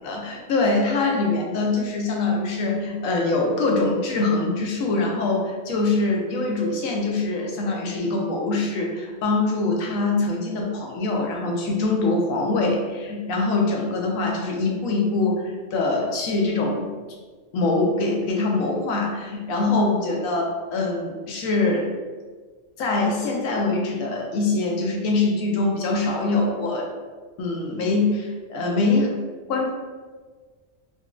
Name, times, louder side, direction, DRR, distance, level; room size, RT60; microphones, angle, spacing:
voice 1, 0.0-16.9 17.5-21.9 22.8-26.9 27.4-29.1 29.5-29.7, left 3 dB, 90° left, 0 dB, 1.0 m, -23 dB
4.0 x 2.3 x 2.3 m, 1.4 s
omnidirectional pair, 1.3 m